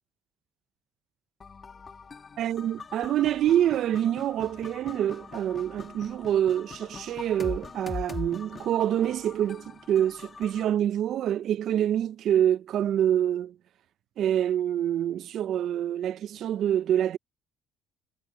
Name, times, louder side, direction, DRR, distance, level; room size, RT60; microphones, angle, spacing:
sound 1, 1.4-10.6, left 5 dB, 35° left, 3.3 m, -42 dB
voice 1, 2.4-13.6 14.2-17.2, right 10 dB, 60° right, 0.7 m, -26 dB
supercardioid pair, 85°, 0 cm